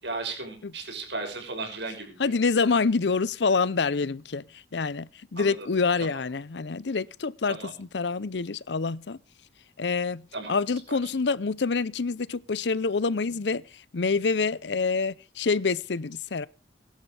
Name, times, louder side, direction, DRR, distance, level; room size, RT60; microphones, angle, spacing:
voice 1, 0.0-2.3 5.4-5.7 6.0-6.1 7.5-7.7 10.3-10.5 10.9-11.0, right 3 dB, 85° right, 6.4 m, -35 dB
voice 2, 2.2-9.2 9.8-16.5, left 4 dB, 80° left, 0.7 m, -27 dB
22.0 x 11.5 x 3.4 m
head